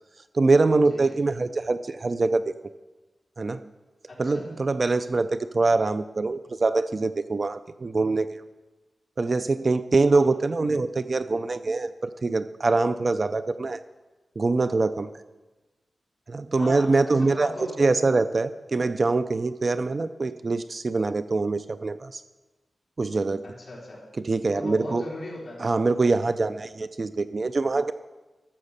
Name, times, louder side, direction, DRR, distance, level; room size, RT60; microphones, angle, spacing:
voice 1, 0.3-2.5 3.4-3.7 4.2-8.4 9.2-13.8 14.4-15.1 16.3-17.5 17.8-22.2 23.0-23.4 24.2-25.0 25.6-27.9, right 3 dB, 35° right, 12 dB, 0.4 m, -24 dB
voice 2, 16.6-17.9 23.4-24.1 24.5-25.7, left 1 dB, 40° left, -4 dB, 3.7 m, -38 dB
13.5 x 7.4 x 6.5 m, 1.2 s
wide cardioid pair, 155°, 0 cm